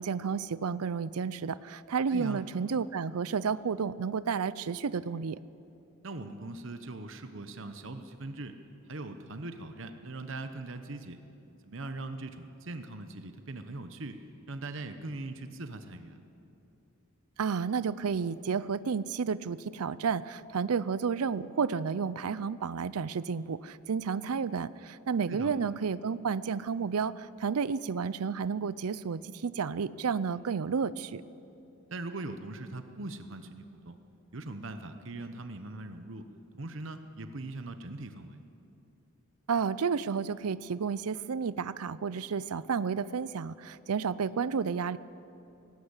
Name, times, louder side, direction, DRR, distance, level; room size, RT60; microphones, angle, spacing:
voice 1, 0.0-5.4 17.4-31.2 39.5-45.0, right 6 dB, 90° right, 18 dB, 0.5 m, -31 dB
voice 2, 2.1-2.4 6.0-8.6 8.9-11.2 11.6-14.2 14.5-16.2 25.3-25.5 31.9-34.0 34.3-36.2 36.6-38.4, right 2 dB, 60° right, 8 dB, 1.0 m, -41 dB
18.5 x 17.0 x 8.2 m, 2.8 s
head